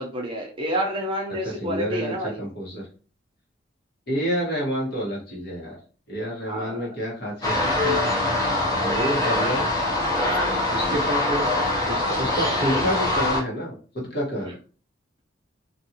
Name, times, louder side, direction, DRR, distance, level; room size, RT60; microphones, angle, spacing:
voice 1, 0.0-2.4 6.5-6.9, equal, 25° right, 0 dB, 0.6 m, -29 dB
voice 2, 1.4-2.9 4.1-5.8 6.1-8.3 8.8-9.6 10.7-11.5 11.9-14.5, equal, 60° left, -4 dB, 1.3 m, -29 dB
sound 1, 7.4-13.4, left 2 dB, 20° left, 0.7 m, -23 dB
2.6 x 2.5 x 2.8 m, 0.40 s
head